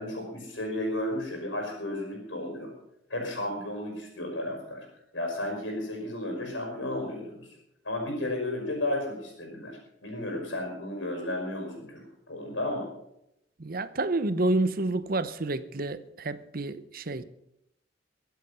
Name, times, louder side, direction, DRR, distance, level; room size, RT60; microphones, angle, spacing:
voice 1, 0.0-2.7 3.1-4.9 5.1-7.5 7.8-12.0 12.3-12.9, left 1 dB, 85° left, 5.3 m, -33 dB
voice 2, 13.6-17.2, right 2 dB, 50° right, 0.9 m, -29 dB
22.5 x 8.2 x 5.7 m
head